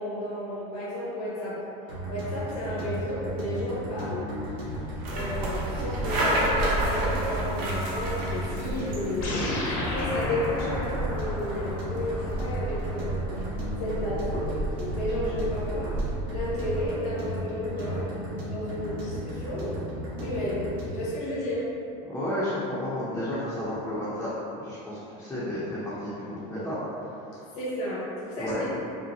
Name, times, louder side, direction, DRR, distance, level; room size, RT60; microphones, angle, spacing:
voice 1, 0.0-1.6 2.1-4.2 5.1-13.2 13.8-14.5 14.9-15.9 16.3-18.0 18.5-19.7 20.2-20.6 20.9-21.6 27.5-28.8, left 1 dB, 90° left, -9 dB, 1.4 m, -32 dB
sound 1, 1.9-21.1, equal, 70° right, 1.4 m, -35 dB
sound 2, 4.7-17.0, right 1 dB, 55° right, 0.9 m, -32 dB
sound 3, 9.2-13.9, left 1 dB, 50° left, 0.8 m, -34 dB
voice 2, 22.1-26.8 28.4-28.6, left 1 dB, 10° left, -11 dB, 0.7 m, -32 dB
5.4 x 2.2 x 2.8 m, 2.8 s
cardioid pair, 150°, 19 cm